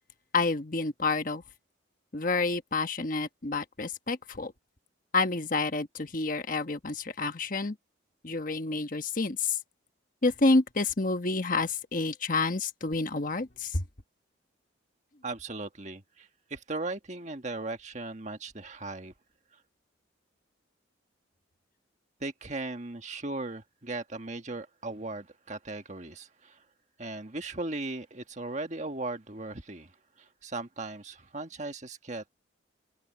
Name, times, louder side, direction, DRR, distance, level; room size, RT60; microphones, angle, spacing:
voice 1, 0.3-1.4 2.1-4.5 5.1-7.7 8.2-9.6 10.2-13.8, left 3 dB, 45° left, 1.2 m, -29 dB
voice 2, 15.2-19.1 22.2-26.6 27.0-29.9 30.2-32.3, right 2 dB, 35° right, 1.6 m, -37 dB
open air
head